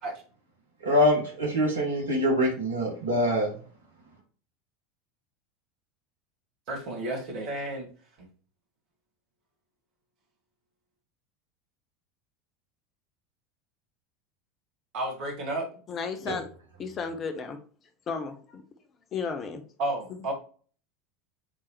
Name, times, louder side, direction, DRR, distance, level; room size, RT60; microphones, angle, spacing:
voice 1, 0.8-3.5, left 1 dB, 75° right, -1 dB, 2.4 m, -24 dB
voice 2, 6.7-7.9 8.2-8.3 14.9-15.7 19.8-20.3, right 1 dB, 50° right, -1 dB, 2.6 m, -32 dB
voice 3, 15.9-16.5 16.8-17.6 18.1-18.6 19.1-19.6 20.1-20.2, left 5 dB, 35° left, 6 dB, 1.2 m, -33 dB
8.6 x 4.0 x 3.3 m, 0.41 s
figure-of-eight pair, 75°, 0 cm